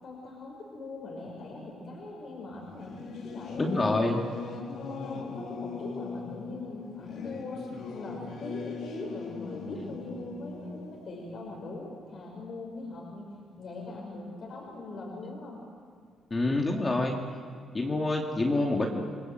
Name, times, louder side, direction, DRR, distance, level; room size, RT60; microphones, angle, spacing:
voice 1, 0.0-3.0 3.2-4.2 4.6-13.3 13.6-15.6, left 2 dB, 55° left, -1 dB, 5.6 m, -41 dB
Singing / Musical instrument, 2.6-12.7, left 4 dB, 75° left, 3.5 m, -40 dB
voice 2, 3.6-4.2 16.3-17.2 17.7-19.0, left 2 dB, 25° left, 0 dB, 2.6 m, -27 dB
29.5 x 20.0 x 8.0 m, 2.1 s
cardioid pair, 90°, 0 cm